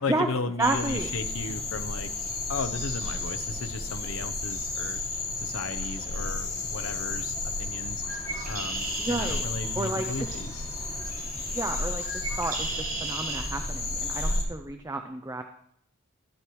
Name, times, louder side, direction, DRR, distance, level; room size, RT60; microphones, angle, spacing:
voice 1, 0.0-2.1 2.5-5.0 5.4-8.0 8.5-10.6, left 3 dB, 65° left, 9 dB, 0.7 m, -35 dB
sound 1, 0.6-14.4, left 2 dB, 25° left, 2.5 m, -33 dB
voice 2, 0.6-1.1 9.0-9.5 9.7-10.3 11.5-12.0 12.4-15.4, right 2 dB, 15° right, 6 dB, 0.5 m, -31 dB
Bird, 7.9-13.4, right 3 dB, 35° right, 2.3 m, -37 dB
sound 2, 8.0-14.4, equal, 5° left, 4.7 m, -51 dB
12.0 x 11.5 x 3.1 m, 0.72 s
head